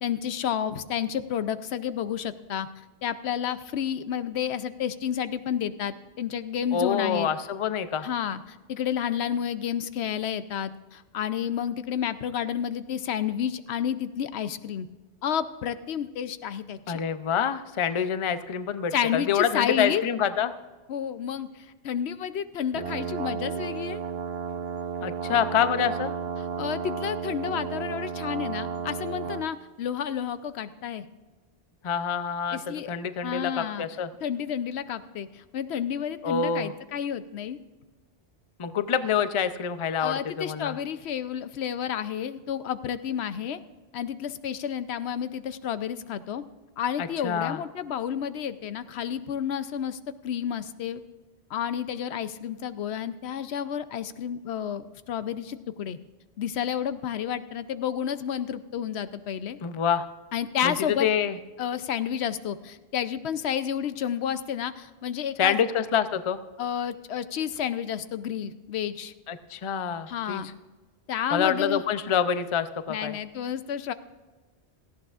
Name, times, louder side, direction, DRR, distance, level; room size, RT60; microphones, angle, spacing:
voice 1, 0.0-2.7 3.0-7.3 8.0-14.9 15.2-17.0 18.9-20.0 20.9-24.0 26.6-31.0 32.5-32.9 33.2-33.9 34.2-37.6 40.0-43.6 43.9-46.4 46.8-50.0 50.2-51.0 51.5-56.0 56.4-59.6 60.3-61.1 61.6-65.6 66.6-69.1 70.1-70.5 71.1-71.8 72.9-73.9, left 9 dB, 75° left, 12 dB, 0.9 m, -30 dB
voice 2, 6.7-8.1 16.9-20.5 25.0-26.1 31.8-34.1 36.2-36.7 38.6-40.8 47.0-47.6 59.6-60.1 60.6-61.4 65.4-66.4 69.3-70.4 71.3-73.2, left 7 dB, 40° left, 11 dB, 0.5 m, -26 dB
sound 1, 22.7-29.5, right 7 dB, 70° right, 1.0 m, -33 dB
17.5 x 14.5 x 2.4 m, 1.2 s
omnidirectional pair, 1.1 m